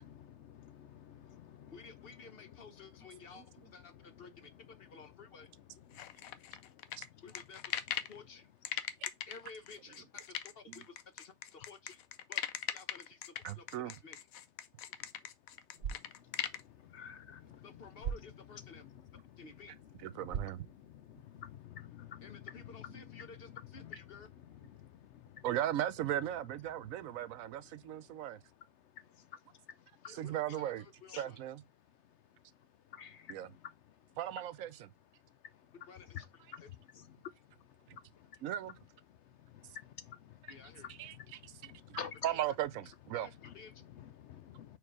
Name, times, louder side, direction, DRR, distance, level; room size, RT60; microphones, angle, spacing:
voice 1, 0.0-1.7 5.9-7.1 15.0-15.1 15.8-17.7 18.8-19.4 20.2-20.4 20.8-23.2 23.5-24.0 24.7-25.4 29.0-30.1 31.1-31.2 32.9-33.6 35.4-35.7 36.5-36.7 36.9-37.3 37.9-38.4 39.3-40.5 40.8-42.2 43.4-43.5 44.0-44.8, left 8 dB, 65° left, 0.8 m, -51 dB
voice 2, 1.7-3.5 3.7-5.5 7.2-7.8 8.1-8.5 9.3-12.0 12.3-14.2 17.6-18.8 19.4-19.7 22.2-24.3 30.0-31.4 35.9-36.2 36.6-36.7 40.5-40.9 42.3-42.4 43.1-43.8, left 4 dB, 50° left, 1.0 m, -54 dB
sound 1, 5.9-8.2 8.6-16.6, left 10 dB, 85° left, 1.1 m, -40 dB
voice 3, 13.4-13.9 20.0-20.6 25.4-28.4 30.1-30.9 31.2-31.6 33.3-33.5 34.2-34.9 37.9-38.0 38.4-38.8 40.4-40.5 40.9-43.3, right 12 dB, 75° right, 1.0 m, -37 dB
sound 2, 15.6-21.6, right 7 dB, 60° right, 1.2 m, -46 dB
4.7 x 4.4 x 4.7 m
omnidirectional pair, 1.4 m